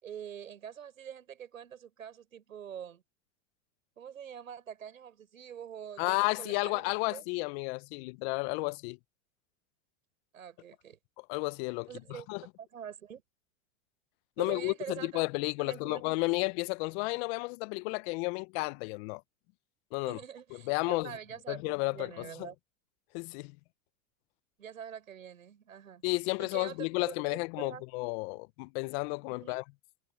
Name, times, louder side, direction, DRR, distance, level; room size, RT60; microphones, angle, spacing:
voice 1, 0.0-3.0 4.0-7.2 10.3-11.0 11.9-12.3 12.6-13.2 14.4-15.2 15.6-16.0 20.1-22.5 24.6-26.0 26.4-27.8 29.3-29.6, right 8 dB, 90° right, 7.8 m, -45 dB
voice 2, 6.0-9.0 11.3-12.4 14.4-19.2 19.9-20.2 20.7-21.1 21.5-22.5 23.1-23.6 26.0-29.6, left 28 dB, 50° left, 1.0 m, -32 dB
hypercardioid pair, 110°, 40 cm